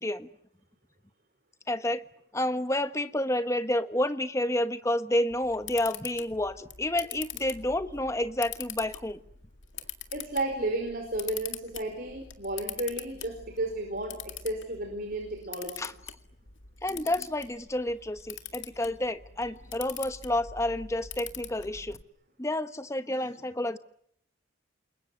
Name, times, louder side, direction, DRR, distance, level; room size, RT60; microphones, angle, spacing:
voice 1, 1.7-2.0 2.3-9.2 15.8-15.9 16.8-22.0 22.4-23.8, left 1 dB, 15° left, 10 dB, 1.2 m, -29 dB
Camera, 5.3-22.0, left 10 dB, 80° left, 2.1 m, -43 dB
voice 2, 10.1-15.9, right 1 dB, 50° right, 4 dB, 5.0 m, -33 dB
28.5 x 22.0 x 9.5 m, 0.69 s
head